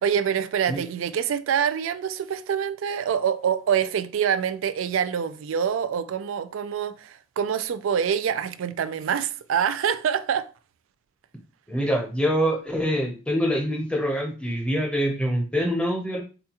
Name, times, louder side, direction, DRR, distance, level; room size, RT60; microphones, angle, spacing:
voice 1, 0.0-10.5, right 8 dB, 75° right, 0.3 m, -25 dB
voice 2, 11.7-16.2, equal, 5° left, 0.6 m, -25 dB
4.0 x 2.3 x 2.9 m
head